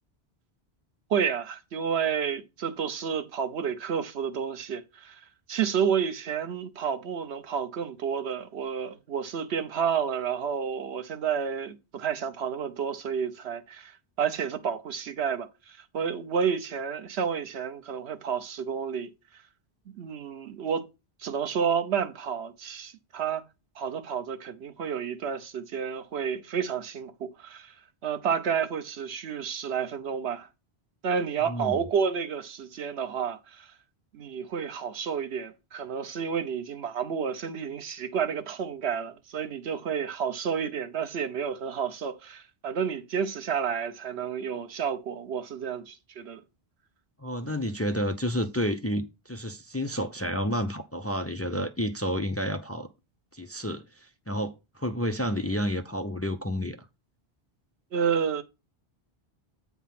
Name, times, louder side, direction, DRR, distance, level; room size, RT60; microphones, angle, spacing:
voice 1, 1.1-5.2 5.5-13.9 14.2-19.1 20.0-20.8 21.2-23.4 23.8-27.7 28.0-30.5 31.0-33.7 34.1-46.4 57.9-58.4, right 7 dB, 85° right, 1.1 m, -30 dB
voice 2, 31.5-31.8 47.2-52.9 53.3-56.8, equal, 20° left, 0.4 m, -30 dB
8.3 x 3.6 x 5.8 m
omnidirectional pair, 1.1 m